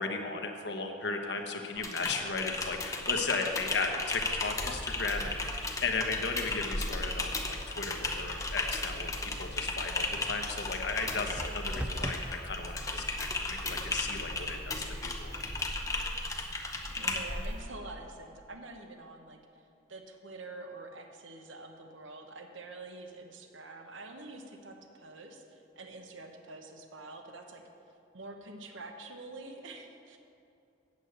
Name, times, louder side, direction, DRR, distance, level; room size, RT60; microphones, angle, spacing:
voice 1, 0.0-15.3, left 4 dB, 60° left, 4 dB, 1.1 m, -36 dB
Typing, 1.8-17.4, left 2 dB, 15° left, 0.7 m, -35 dB
sound 1, 4.4-17.6, right 1 dB, 5° right, 0.3 m, -43 dB
voice 2, 17.0-19.6 19.9-27.6 28.1-30.2, right 2 dB, 80° right, 4 dB, 1.1 m, -46 dB
8.4 x 7.9 x 8.0 m, 2.7 s
head